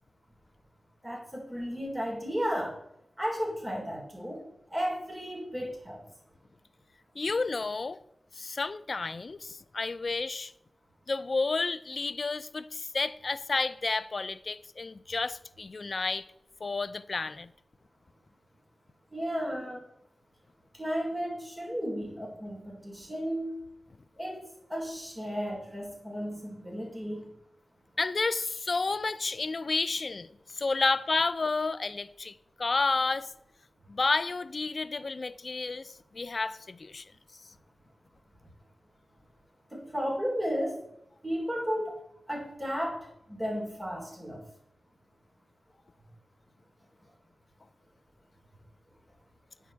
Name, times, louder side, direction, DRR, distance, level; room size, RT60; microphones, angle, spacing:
voice 1, 1.0-2.8 3.2-6.0 19.1-19.9 20.7-23.6 24.2-24.4 24.7-27.3 39.7-40.8 41.2-41.9 42.3-44.4, equal, 15° right, 3.6 m, -34 dB
voice 2, 7.2-8.0 8.4-10.5 11.1-16.3 16.6-17.5 28.0-30.3 30.5-33.3 33.9-37.0, left 3 dB, 50° left, 0.4 m, -31 dB
9.3 x 4.7 x 7.0 m
wide cardioid pair, 85°, 0 cm